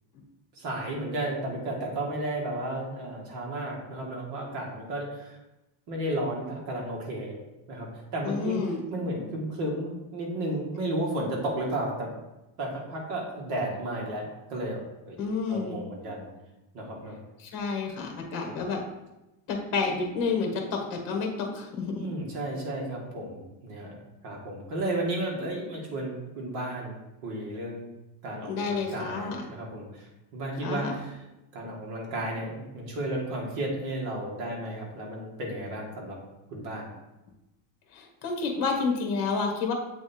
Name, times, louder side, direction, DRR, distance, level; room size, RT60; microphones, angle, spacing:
voice 1, 0.6-5.4 5.9-7.4 7.7-8.7 8.9-12.1 12.6-14.8 15.1-15.2 15.5-16.3 16.7-17.2 18.5-18.6 22.0-27.0 27.2-27.9 28.2-31.2 31.5-36.2 36.5-36.9, right 1 dB, 50° right, -1 dB, 1.7 m, -33 dB
voice 2, 8.2-8.8 15.2-15.8 17.4-18.8 19.5-22.0 28.4-29.4 30.6-31.0 37.9-39.7, left 4 dB, 45° left, 2 dB, 1.4 m, -30 dB
7.6 x 3.4 x 4.2 m, 0.97 s
cardioid pair, 180°, 47 cm